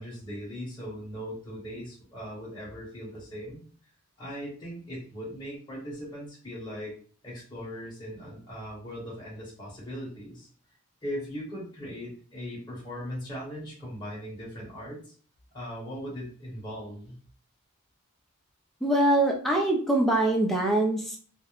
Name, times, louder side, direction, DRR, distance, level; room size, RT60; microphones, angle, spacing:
voice 1, 0.0-3.6 4.2-7.0 7.2-10.5 11.0-15.1 15.5-17.2, equal, 20° left, -6 dB, 0.8 m, -39 dB
voice 2, 18.8-21.2, right 1 dB, ahead, -1 dB, 0.3 m, -23 dB
2.3 x 2.0 x 2.9 m, 0.43 s
head